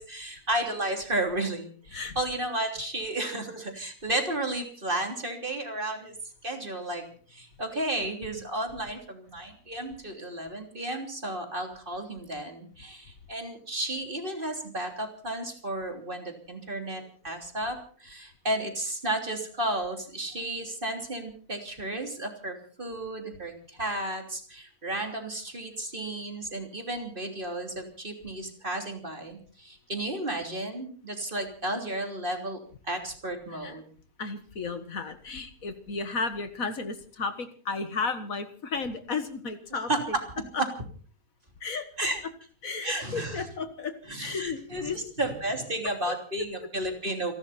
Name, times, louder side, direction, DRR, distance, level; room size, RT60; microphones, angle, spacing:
voice 1, 0.0-6.1 6.4-7.0 7.3-32.6 32.8-33.9 39.7-40.0 42.0-42.2 42.8-43.5 44.1-44.9 45.2-47.3, right 1 dB, 35° right, 3 dB, 3.4 m, -33 dB
voice 2, 34.2-40.2 40.5-40.6 41.6-41.9 42.6-45.1 46.1-46.2 46.6-46.7, left 4 dB, 65° left, 9 dB, 1.9 m, -34 dB
29.0 x 12.0 x 4.2 m, 0.41 s
omnidirectional pair, 1.6 m